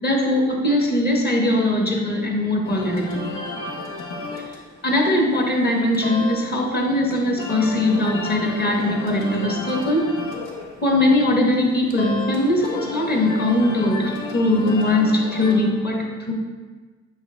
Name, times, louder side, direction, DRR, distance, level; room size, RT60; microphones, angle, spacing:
voice 1, 0.0-3.2 4.8-10.1 10.8-16.3, left 1 dB, 30° left, 1 dB, 1.3 m, -20 dB
sound 1, 2.6-15.5, left 2 dB, 85° left, 1.2 m, -33 dB
8.7 x 3.7 x 3.4 m, 1.4 s
cardioid pair, 90°, 30 cm